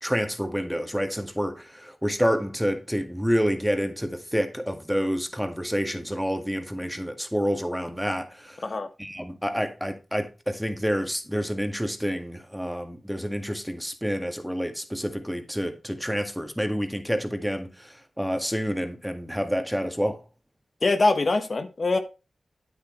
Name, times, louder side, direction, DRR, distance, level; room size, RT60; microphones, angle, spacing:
voice 1, 0.0-8.6 9.0-20.2, equal, ahead, 1.9 m, -28 dB
voice 2, 20.8-22.0, left 3 dB, 55° left, 1.1 m, -23 dB
9.0 x 8.3 x 3.1 m
cardioid pair, 45°, 0 cm